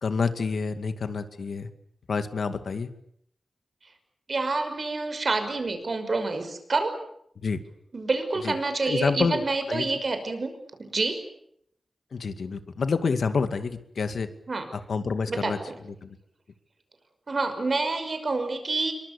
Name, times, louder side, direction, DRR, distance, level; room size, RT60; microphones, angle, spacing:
voice 1, 0.0-1.7 2.1-2.9 7.4-7.6 8.4-8.5 8.9-10.0 12.1-14.3 14.7-16.2, left 5 dB, 85° left, 10 dB, 2.2 m, -28 dB
voice 2, 4.3-7.0 7.9-10.5 10.8-11.2 14.5-14.7 15.3-15.7 17.3-18.9, right 3 dB, 50° right, 8 dB, 5.7 m, -28 dB
27.0 x 23.5 x 8.4 m, 0.71 s
wide cardioid pair, 105°, 0 cm